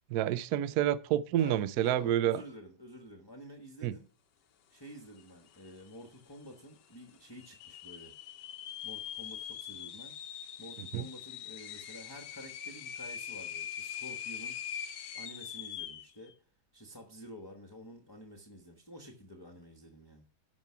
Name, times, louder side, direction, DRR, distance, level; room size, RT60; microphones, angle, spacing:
voice 1, 0.1-2.4 3.8-4.0 10.9-11.0, right 11 dB, 75° right, 0.9 m, -29 dB
voice 2, 1.4-4.1 4.7-8.1 8.8-10.1 10.6-14.6 15.1-16.3 16.7-20.3, equal, 15° left, 1.1 m, -50 dB
sound 1, 5.2-5.3 5.5-6.1 6.6-6.7 7.4-16.1, left 9 dB, 65° left, 1.3 m, -42 dB
12.5 x 5.4 x 5.8 m
omnidirectional pair, 2.2 m